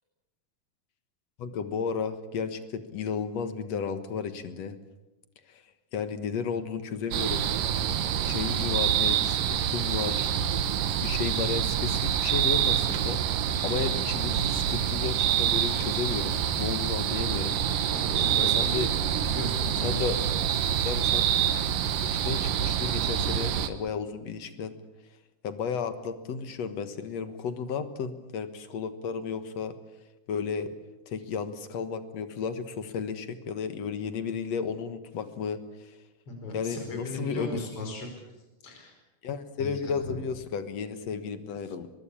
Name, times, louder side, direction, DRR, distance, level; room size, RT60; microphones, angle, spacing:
voice 1, 1.4-4.8 5.5-5.6 5.9-7.5 8.2-10.3 11.0-13.2 13.6-17.6 18.4-18.9 19.8-20.2 20.8-21.3 21.6-24.7 25.4-29.7 30.3-30.7 31.1-36.0 36.5-37.6 39.2-41.9, left 6 dB, 60° left, 10 dB, 2.4 m, -33 dB
sound 1, 7.1-23.7, right 9 dB, 90° right, 2.9 m, -26 dB
voice 2, 17.9-18.8 19.2-20.4 36.3-38.1 38.6-38.9 39.6-39.9, left 2 dB, 45° left, 3 dB, 5.8 m, -37 dB
23.0 x 21.5 x 8.6 m, 1.0 s
omnidirectional pair, 3.8 m